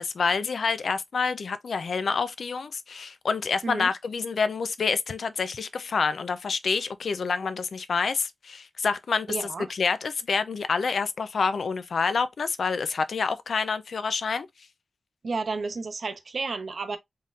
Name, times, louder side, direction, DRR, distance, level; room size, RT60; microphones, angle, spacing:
voice 1, 0.0-14.5, left 5 dB, 80° left, 0.5 m, -27 dB
voice 2, 9.3-9.7 15.2-17.0, right 4 dB, 65° right, 0.7 m, -31 dB
4.0 x 3.7 x 2.4 m
wide cardioid pair, 85°, 0 cm